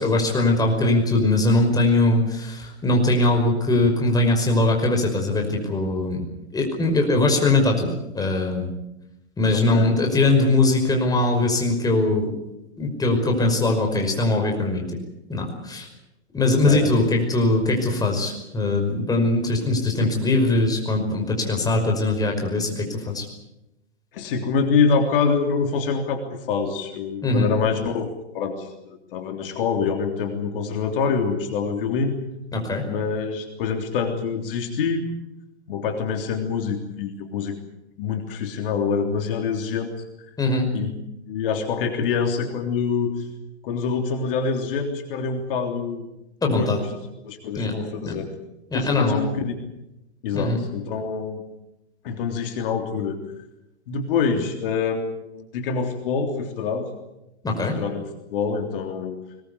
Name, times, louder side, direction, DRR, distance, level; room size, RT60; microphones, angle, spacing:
voice 1, 0.0-6.2 6.5-8.7 9.4-12.3 12.8-14.9 15.3-15.9 16.3-23.2 27.2-27.5 32.5-32.8 40.4-40.7 46.4-46.8 47.5-47.7 48.1-48.2 48.7-49.2 50.3-50.6 57.4-57.8, left 2 dB, 10° left, 2 dB, 5.6 m, -21 dB
voice 2, 9.5-9.9 16.6-17.1 20.0-20.1 24.1-32.2 32.9-35.1 35.7-37.6 38.0-39.9 40.7-40.9 41.3-43.3 43.6-46.1 46.4-46.9 47.2-48.3 48.7-49.5 50.2-51.4 52.0-53.2 53.9-56.9 57.6-59.2, left 5 dB, 55° left, 4 dB, 3.4 m, -25 dB
22.0 x 21.5 x 8.3 m, 0.91 s
hypercardioid pair, 120°, 33 cm